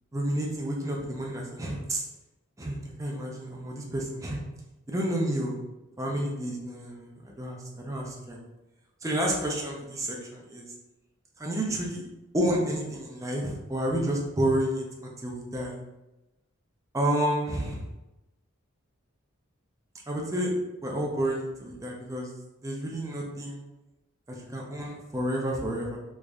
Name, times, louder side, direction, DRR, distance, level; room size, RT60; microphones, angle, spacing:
voice 1, 0.1-2.0 2.6-4.4 4.9-5.6 6.0-8.4 9.0-10.7 11.4-12.0 12.3-15.8 16.9-17.8 20.1-20.5 20.8-22.3 22.6-23.6 24.3-26.0, right 1 dB, 15° right, -1 dB, 0.6 m, -30 dB
3.1 x 2.6 x 3.5 m, 0.99 s
head